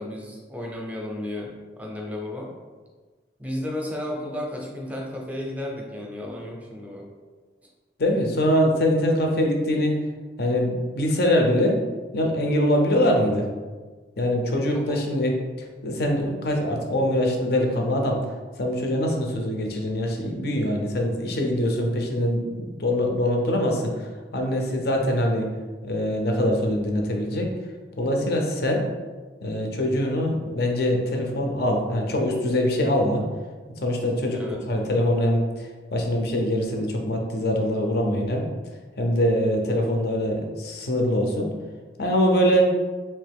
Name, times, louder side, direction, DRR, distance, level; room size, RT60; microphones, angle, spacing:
voice 1, 0.0-2.5 3.4-7.1 14.6-15.0 34.3-34.6, left 1 dB, 10° right, -1 dB, 0.6 m, -33 dB
voice 2, 8.0-10.0 10.4-11.8 12.1-13.5 14.2-18.2 18.6-25.5 25.8-27.5 28.0-28.9 29.4-33.2 33.8-38.4 39.0-41.5 42.0-42.7, equal, 60° left, 2 dB, 0.6 m, -23 dB
3.3 x 2.9 x 3.4 m, 1.4 s
head